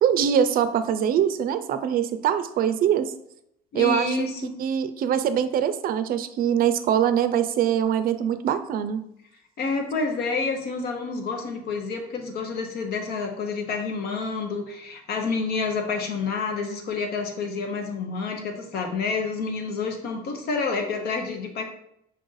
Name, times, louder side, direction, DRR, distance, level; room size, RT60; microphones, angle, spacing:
voice 1, 0.0-3.1 3.7-4.1 4.6-9.0, right 9 dB, 60° right, 11 dB, 0.4 m, -23 dB
voice 2, 3.7-4.5 9.6-21.6, left 4 dB, 70° left, 4 dB, 0.9 m, -28 dB
5.4 x 2.5 x 3.9 m, 0.76 s
cardioid pair, 110°, 17 cm